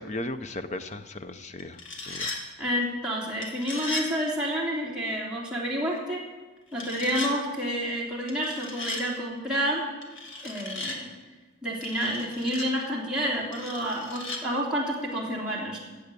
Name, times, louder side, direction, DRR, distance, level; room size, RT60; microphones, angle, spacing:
voice 1, 0.0-1.8 2.0-2.4, left 1 dB, 35° left, 11 dB, 0.7 m, -36 dB
sound 1, 1.6-2.4 3.4-4.1 6.7-7.3 8.3-9.0 10.0-11.0 11.8-12.7 13.5-14.4, left 3 dB, 65° left, 2.2 m, -36 dB
voice 2, 2.6-6.2 6.7-9.8 10.4-11.1 11.6-15.8, equal, 5° right, -5 dB, 3.2 m, -29 dB
16.0 x 8.2 x 8.3 m, 1.3 s
head